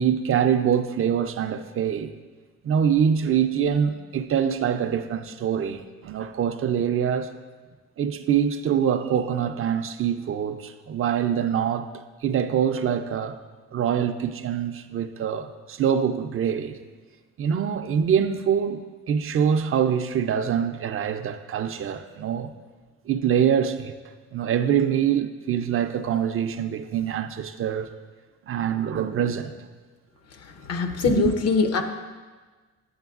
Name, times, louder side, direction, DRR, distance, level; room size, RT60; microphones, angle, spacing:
voice 1, 0.0-2.1 2.6-7.3 8.0-11.9 12.2-13.4 13.7-16.8 17.4-22.5 23.1-23.9 24.3-27.9 28.5-29.5 31.0-31.3, right 8 dB, 45° right, 0.4 m, -24 dB
voice 2, 30.4-31.8, left 5 dB, 55° left, 0.7 m, -23 dB
7.9 x 7.4 x 2.4 m
cardioid pair, 90°, 30 cm